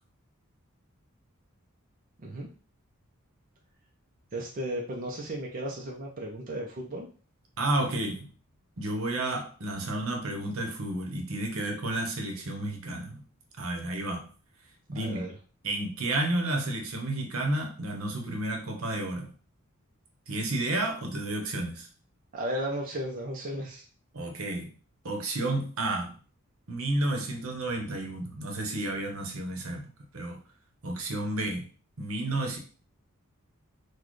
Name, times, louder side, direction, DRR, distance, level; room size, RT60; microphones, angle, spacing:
voice 1, 4.3-7.1 14.9-15.3 22.3-23.8, right 1 dB, 40° right, -1 dB, 0.5 m, -35 dB
voice 2, 7.6-8.3 8.8-13.2 13.6-14.3 14.9-15.3 15.6-19.3 20.3-21.9 24.1-24.7 25.0-26.1 26.7-29.9 30.1-30.4 30.8-31.7 32.0-32.6, right 1 dB, 75° right, 2 dB, 0.9 m, -31 dB
4.1 x 2.3 x 3.1 m, 0.40 s
head